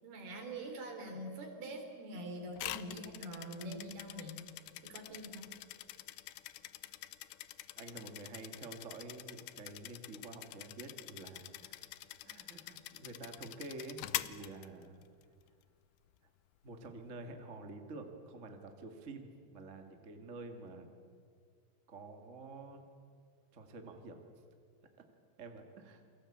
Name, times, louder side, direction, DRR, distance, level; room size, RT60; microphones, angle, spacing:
voice 1, 0.0-4.4 4.8-5.5, right 1 dB, 70° right, 4 dB, 5.6 m, -44 dB
sound 1, 2.6-15.2, left 16 dB, 90° left, 2.9 m, -46 dB
voice 2, 7.8-11.9 12.2-15.0 16.6-20.9 21.9-22.8 23.5-24.2 25.4-26.0, right 3 dB, 30° right, 5 dB, 1.5 m, -49 dB
28.5 x 22.5 x 8.7 m, 2.2 s
omnidirectional pair, 4.6 m